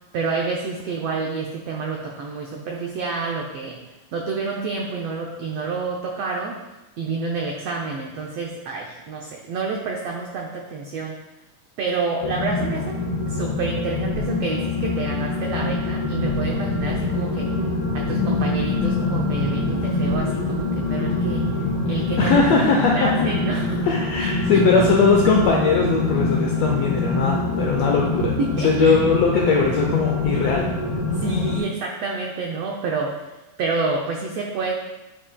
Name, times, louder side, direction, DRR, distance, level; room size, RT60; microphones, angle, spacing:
voice 1, 0.1-3.8 4.1-6.6 7.0-11.2 11.8-17.5 17.9-21.5 21.8-22.3 22.7-23.9 24.2-24.9 28.4-29.0 31.1-33.2 33.6-34.7, right 4 dB, 85° right, 0 dB, 1.4 m, -28 dB
sound 1, 12.2-31.6, left 3 dB, 65° left, 2.4 m, -24 dB
voice 2, 22.2-23.3 23.9-28.3 28.6-30.7, left 4 dB, 80° left, 0 dB, 1.5 m, -20 dB
9.3 x 6.3 x 2.2 m, 1.0 s
omnidirectional pair, 3.6 m